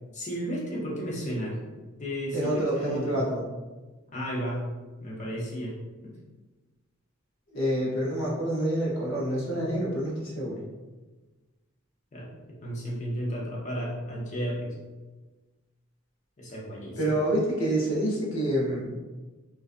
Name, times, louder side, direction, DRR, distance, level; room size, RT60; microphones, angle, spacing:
voice 1, 0.1-1.6 2.0-3.3 4.1-4.7 5.0-5.8 6.0-6.1 12.1-14.7 16.4-17.0, equal, 35° left, -4 dB, 0.6 m, -33 dB
voice 2, 2.3-3.4 7.5-10.6 17.0-18.9, right 1 dB, 65° left, -4 dB, 0.8 m, -27 dB
2.4 x 2.3 x 2.5 m, 1.2 s
head